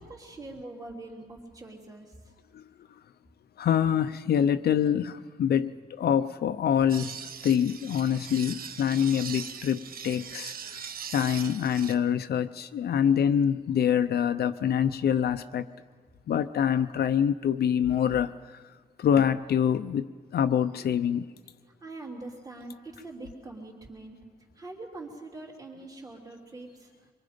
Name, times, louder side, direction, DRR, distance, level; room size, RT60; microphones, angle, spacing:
voice 1, 0.0-2.1 21.6-24.2 24.5-27.1, right 2 dB, 20° right, 3.2 m, -43 dB
voice 2, 3.6-5.7 6.0-7.2 7.4-10.8 11.1-15.7 16.3-18.3 19.0-21.2, left 8 dB, 80° left, 0.7 m, -25 dB
sound 1, 6.9-12.0, right 7 dB, 65° right, 0.9 m, -40 dB
25.5 x 23.0 x 5.1 m
wide cardioid pair, 155°, 16 cm